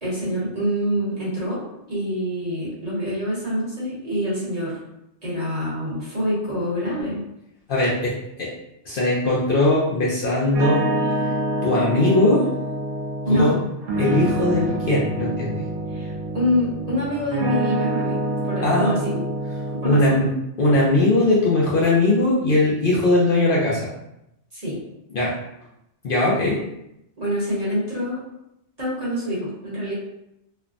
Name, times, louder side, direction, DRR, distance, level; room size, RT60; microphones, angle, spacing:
voice 1, 0.0-1.6 1.9-4.8 5.2-7.2 13.2-13.5 15.9-18.2 18.5-19.2 19.8-20.1 24.5-24.8 27.2-28.2 28.8-29.9, equal, 35° right, -8 dB, 1.0 m, -25 dB
voice 2, 7.7-8.5 8.8-10.9 11.6-12.5 13.3-13.6 14.0-15.6 18.6-19.0 19.8-20.3 20.6-23.9 25.1-25.4 26.0-26.6, left 2 dB, 60° left, -6 dB, 0.7 m, -20 dB
sound 1, 10.5-20.3, right 1 dB, 60° right, 0.8 m, -26 dB
3.1 x 2.0 x 2.4 m, 0.83 s
omnidirectional pair, 1.2 m